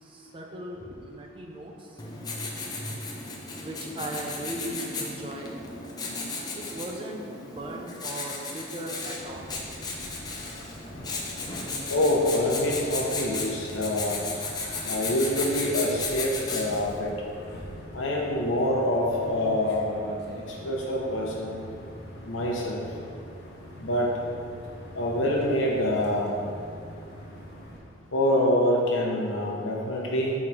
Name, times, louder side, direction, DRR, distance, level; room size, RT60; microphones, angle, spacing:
voice 1, 0.0-2.1 3.6-5.6 6.5-9.5, right 1 dB, 25° right, 1 dB, 0.6 m, -38 dB
Writing, 2.0-16.9, left 3 dB, 20° left, 0.6 m, -35 dB
sound 1, 9.2-27.8, equal, 55° left, 0.9 m, -43 dB
voice 2, 11.9-14.2 14.9-17.1 17.9-19.9 20.6-21.6 22.2-22.8 23.8-24.1 24.9-26.3 28.1-30.3, left 1 dB, 90° left, -2 dB, 1.1 m, -26 dB
4.8 x 3.9 x 5.7 m, 2.4 s
head